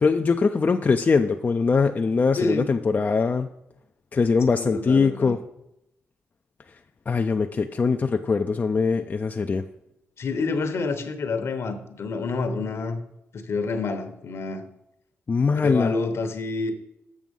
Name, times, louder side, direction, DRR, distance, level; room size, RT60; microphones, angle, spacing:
voice 1, 0.0-3.5 4.1-5.4 7.1-9.6 15.3-15.9, left 4 dB, 35° left, 5 dB, 0.5 m, -22 dB
voice 2, 2.4-2.7 4.5-5.3 10.2-13.0 13.3-14.7 15.6-16.7, left 3 dB, 65° left, 8 dB, 1.1 m, -28 dB
7.6 x 6.1 x 5.4 m, 0.83 s
cardioid pair, 70°, 5 cm